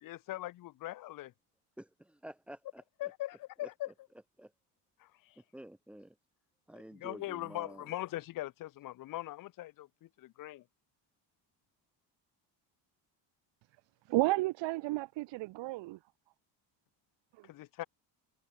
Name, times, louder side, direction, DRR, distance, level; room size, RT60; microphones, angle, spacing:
voice 1, 0.0-1.3 3.0-3.9 5.0-5.4 6.9-10.6 17.4-17.8, left 16 dB, 50° left, 0.8 m, -41 dB
voice 2, 1.8-3.1 3.6-3.7 4.4-4.5 5.4-6.2 6.7-7.9, right 1 dB, 5° right, 3.1 m, -50 dB
voice 3, 14.1-16.0 17.3-17.5, right 20 dB, 75° right, 1.1 m, -32 dB
cardioid pair, 175°, 44 cm